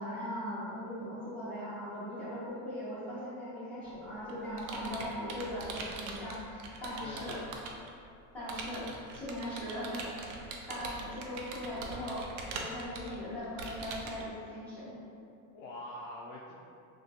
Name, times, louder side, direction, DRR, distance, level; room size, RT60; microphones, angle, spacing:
voice 1, 0.0-7.4 8.3-8.9 9.1-10.1 10.7-14.9, equal, 5° left, -14 dB, 0.9 m, -39 dB
Computer keyboard, 3.8-7.9 8.5-14.2, right 3 dB, 90° right, 0.5 m, -42 dB
voice 2, 7.0-7.6 8.9-9.2 15.5-16.5, left 2 dB, 85° left, -4 dB, 0.5 m, -45 dB
2.8 x 2.3 x 2.7 m, 2.5 s
cardioid pair, 165°, 37 cm